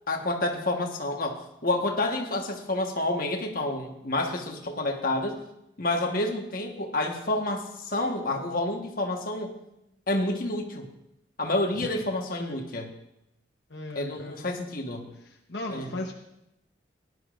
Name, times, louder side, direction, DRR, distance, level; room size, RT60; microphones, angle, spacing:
voice 1, 0.1-5.4 5.8-9.5 10.1-10.9 11.4-12.9 13.9-15.1 15.7-15.9, left 2 dB, 50° left, 2 dB, 1.3 m, -29 dB
voice 2, 11.8-12.1 12.4-12.6 13.7-14.5 15.1-16.1, left 2 dB, 65° left, 1 dB, 1.0 m, -37 dB
18.0 x 11.0 x 2.5 m, 0.85 s
head